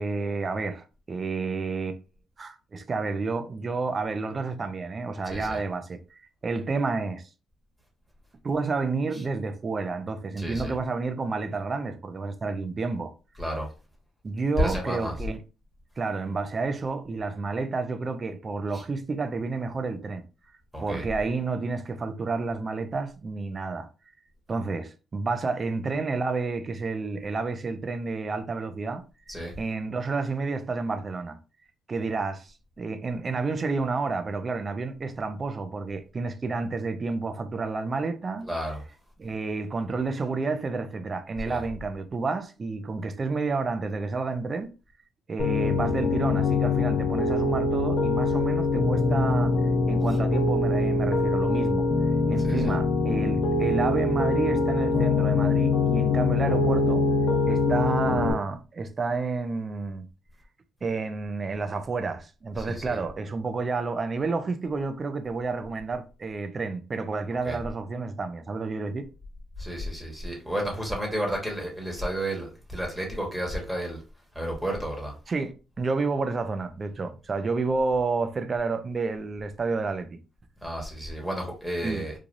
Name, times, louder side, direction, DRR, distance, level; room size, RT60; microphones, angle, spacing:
voice 1, 0.0-2.0 2.4-7.2 8.4-13.1 14.2-15.4 16.0-20.2 20.8-23.9 24.5-29.0 29.6-31.4 31.9-38.5 39.2-44.7 45.3-49.5 49.9-51.9 52.3-57.0 57.5-60.1 60.8-69.1 75.3-80.2 81.8-82.1, right 4 dB, 40° right, 0.5 m, -30 dB
voice 2, 10.4-10.7 13.4-13.7 14.6-15.1 20.7-21.0 29.3-29.5 38.5-38.8 41.4-41.6 52.4-52.7 62.6-63.0 67.4-67.6 69.6-74.0 74.3-75.1 80.6-82.1, equal, 5° right, 1.2 m, -31 dB
Piano, 45.4-58.3, left 3 dB, 75° left, 0.9 m, -24 dB
3.3 x 2.3 x 2.5 m
supercardioid pair, 70°, 0 cm